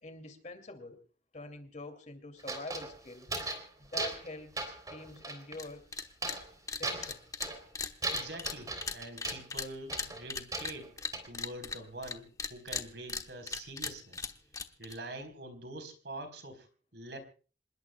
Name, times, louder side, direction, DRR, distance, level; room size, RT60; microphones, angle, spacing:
voice 1, 0.0-1.0 1.3-3.3 3.8-5.9 6.8-7.2, left 2 dB, 40° left, 8 dB, 2.6 m, -45 dB
sound 1, 2.4-3.7 3.9-4.3 4.6-5.6 6.2-6.5 6.8-7.7 8.0-9.4 9.9-11.3, right 2 dB, 20° right, 3.4 m, -38 dB
sound 2, 5.5-5.7 5.9-6.4 6.7-12.1 12.4-15.0, left 4 dB, 20° left, 1.0 m, -38 dB
voice 2, 8.1-11.0 11.2-14.3 14.8-17.2, right 2 dB, 65° right, 9 dB, 4.1 m, -45 dB
27.0 x 20.5 x 2.3 m, 0.39 s
head